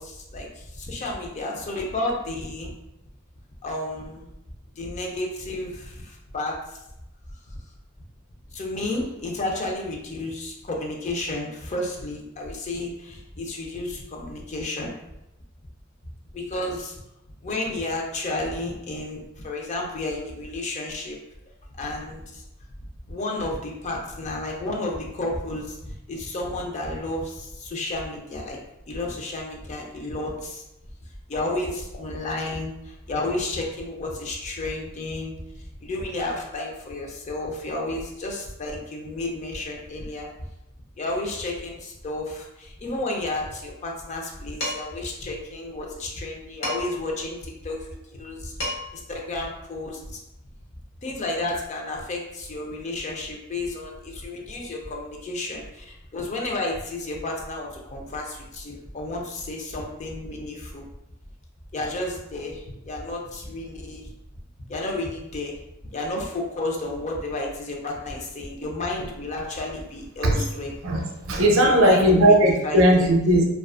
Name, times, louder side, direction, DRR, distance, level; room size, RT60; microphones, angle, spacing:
voice 1, 0.0-2.7 3.6-4.3 4.8-6.8 7.5-7.6 8.5-14.9 16.3-17.0 17.4-21.2 21.8-22.4 23.1-28.6 28.9-30.6 31.3-40.3 41.0-50.2 51.0-60.8 61.7-64.1 64.7-65.6 65.9-70.7 71.6-72.3 72.6-73.1, left 2 dB, 35° left, 0 dB, 0.4 m, -32 dB
Dishes pots and pans, 44.6-45.0 46.6-47.1 48.3-48.4 48.6-49.1, left 1 dB, 75° left, 0.9 m, -31 dB
voice 2, 70.8-73.4, right 1 dB, 85° right, 1 dB, 0.5 m, -18 dB
2.4 x 2.3 x 2.3 m, 0.88 s
head